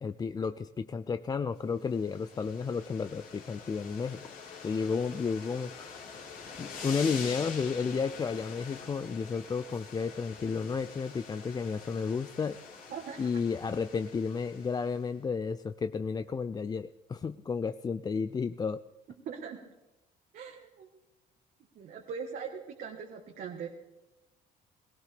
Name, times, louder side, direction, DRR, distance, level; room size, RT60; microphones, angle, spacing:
voice 1, 0.0-4.2 4.6-6.1 6.6-12.6 13.2-18.8, left 5 dB, 25° left, 11 dB, 0.4 m, -32 dB
sound 1, 1.8-15.0, left 5 dB, 60° left, 3.4 m, -45 dB
voice 2, 12.9-13.4 19.2-19.7 20.3-20.9 21.7-23.7, right 6 dB, 60° right, 1 dB, 1.6 m, -41 dB
18.5 x 17.5 x 3.5 m, 1.0 s
cardioid pair, 110°, 17 cm